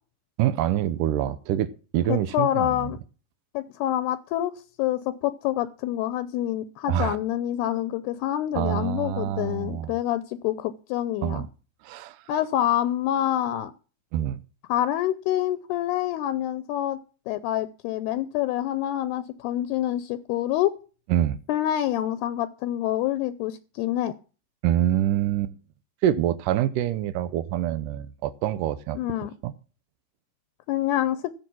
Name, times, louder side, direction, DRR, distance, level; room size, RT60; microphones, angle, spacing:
voice 1, 0.4-2.9 6.9-7.2 8.5-9.9 11.2-11.5 11.8-12.2 14.1-14.4 21.1-21.4 24.6-25.5 26.0-29.0 29.4-29.5, right 11 dB, 85° right, 1.8 m, -25 dB
voice 2, 2.1-3.0 3.5-4.5 4.8-11.4 12.3-13.7 14.7-17.0 17.3-20.7 21.5-24.1 28.9-29.3 30.7-31.2, left 12 dB, 80° left, 2.6 m, -26 dB
14.5 x 7.6 x 6.1 m
omnidirectional pair, 4.8 m